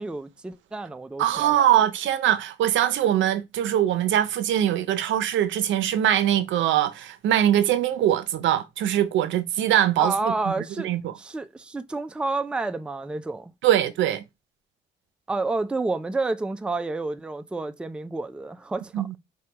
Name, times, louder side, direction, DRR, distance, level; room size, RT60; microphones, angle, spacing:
voice 1, 0.0-1.5 10.0-10.9 11.2-13.5 15.3-19.1, right 3 dB, 5° right, 0.3 m, -29 dB
voice 2, 1.2-11.1 13.6-14.2 18.9-19.1, right 11 dB, 80° right, 0.5 m, -22 dB
4.3 x 2.3 x 2.8 m
cardioid pair, 85°, 19 cm